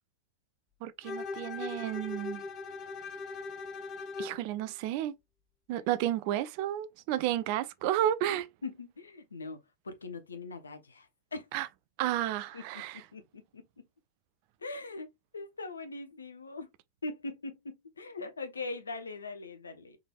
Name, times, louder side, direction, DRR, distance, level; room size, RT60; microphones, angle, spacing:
voice 1, 0.8-2.4 4.2-5.1 5.7-8.5 11.5-11.7 12.0-13.0, right 12 dB, 45° right, 0.3 m, -32 dB
Bowed string instrument, 1.0-4.4, left 4 dB, 30° left, 0.8 m, -40 dB
voice 2, 8.6-9.6 9.8-11.5 12.5-12.6 13.1-13.6 14.6-15.1 15.3-16.7 17.0-20.0, left 3 dB, 75° left, 0.6 m, -41 dB
3.6 x 3.3 x 2.3 m
figure-of-eight pair, 90°, 0 cm